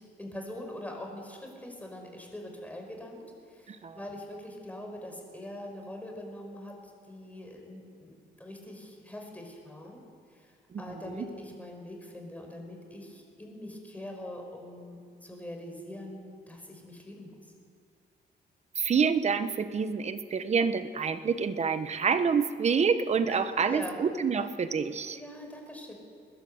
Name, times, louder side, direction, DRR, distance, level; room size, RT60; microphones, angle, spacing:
voice 1, 0.2-6.8 7.1-10.0 10.3-10.5 10.8-17.3 23.3-24.0 25.1-25.9, left 1 dB, 10° left, 2 dB, 5.1 m, -43 dB
voice 2, 3.7-4.0 10.7-11.2 18.8-25.2, right 6 dB, 40° right, 11 dB, 1.1 m, -27 dB
23.0 x 20.5 x 8.0 m, 2.2 s
cardioid pair, 145°, 18 cm